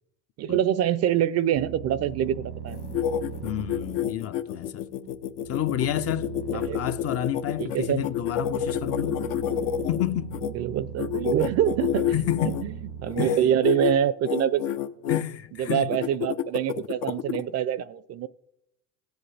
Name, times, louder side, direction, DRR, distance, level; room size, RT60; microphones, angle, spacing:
voice 1, 0.4-2.8 6.5-6.8 7.6-8.1 10.5-12.2 12.4-12.7 13.0-14.7 15.1-15.2 15.6-18.3, right 10 dB, 40° right, 0.4 m, -25 dB
sound 1, 1.5-14.0, right 7 dB, 85° right, 1.1 m, -40 dB
sound 2, 2.7-10.5 11.0-12.6 13.1-13.4 13.6-13.9 14.2-15.2 15.7-17.4, left 10 dB, 80° left, 0.7 m, -28 dB
voice 2, 3.4-4.9 5.5-9.2 9.9-10.4 12.1-12.6 13.2-13.4 15.1-15.9, left 12 dB, 40° left, 0.4 m, -30 dB
16.5 x 7.8 x 3.3 m
supercardioid pair, 90°, 41 cm